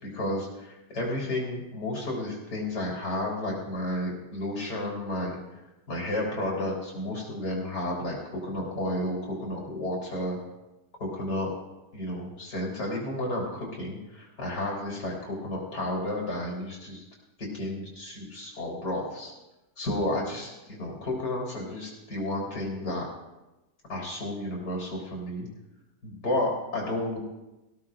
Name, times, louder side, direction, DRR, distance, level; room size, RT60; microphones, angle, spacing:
voice 1, 0.0-5.4 5.9-8.2 8.4-10.4 11.0-11.5 11.9-17.0 17.5-19.3 19.8-23.1 23.9-25.5 26.0-27.2, left 1 dB, 75° left, -2 dB, 4.5 m, -32 dB
19.5 x 16.0 x 2.5 m, 1.0 s
omnidirectional pair, 1.8 m